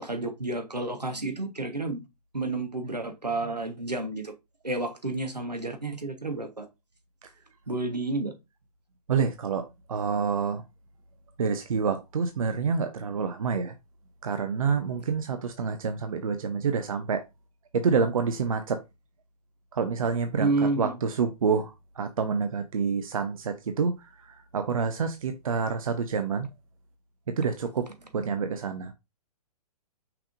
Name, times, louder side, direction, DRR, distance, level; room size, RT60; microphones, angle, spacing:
voice 1, 0.0-2.0 2.3-4.3 4.6-6.7 7.7-8.3 20.4-21.0, right 2 dB, 85° right, 1.2 m, -30 dB
voice 2, 9.1-9.6 9.9-10.6 11.4-13.7 14.2-17.2 17.7-18.8 19.8-21.7 22.0-23.9 24.5-26.5 27.4-27.9 28.1-28.9, right 5 dB, 60° right, 0.6 m, -27 dB
5.7 x 3.5 x 2.5 m
figure-of-eight pair, 120°, 20 cm